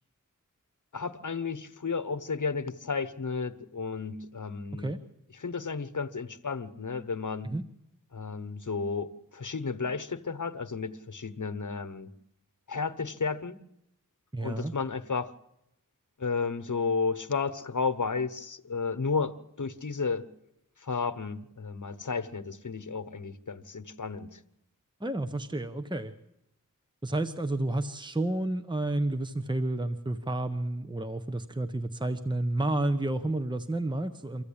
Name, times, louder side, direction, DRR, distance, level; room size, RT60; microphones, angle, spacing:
voice 1, 0.9-4.9 5.4-7.5 8.1-12.1 12.7-13.5 14.4-15.3 16.2-20.3 20.8-24.4, left 4 dB, 65° left, 11 dB, 1.1 m, -33 dB
voice 2, 14.3-14.7 25.0-26.1 27.0-34.4, right 2 dB, 15° right, 9 dB, 1.0 m, -30 dB
25.0 x 15.0 x 8.7 m, 0.86 s
wide cardioid pair, 45°, 33 cm